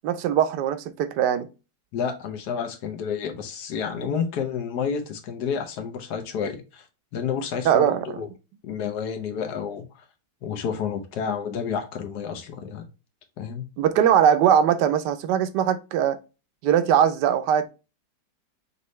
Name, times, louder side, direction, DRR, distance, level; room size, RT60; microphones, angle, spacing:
voice 1, 0.0-1.5 7.6-8.1 13.8-16.2 16.6-17.7, right 9 dB, 80° right, 1.2 m, -21 dB
voice 2, 1.9-6.9 7.1-8.3 8.6-10.0 10.4-12.9 13.4-13.6, left 7 dB, 70° left, 1.2 m, -30 dB
5.3 x 2.6 x 3.1 m
omnidirectional pair, 1.8 m